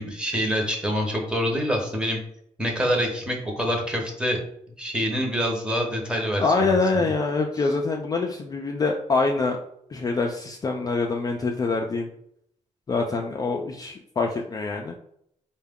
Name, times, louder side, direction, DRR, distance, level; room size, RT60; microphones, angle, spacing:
voice 1, 0.0-2.2 2.6-4.4 4.8-6.8, equal, 5° right, 1 dB, 0.9 m, -26 dB
voice 2, 6.4-9.6 9.9-12.1 12.9-14.9, left 3 dB, 30° left, 1 dB, 0.3 m, -25 dB
4.5 x 2.2 x 3.5 m, 0.72 s
wide cardioid pair, 140°, 13 cm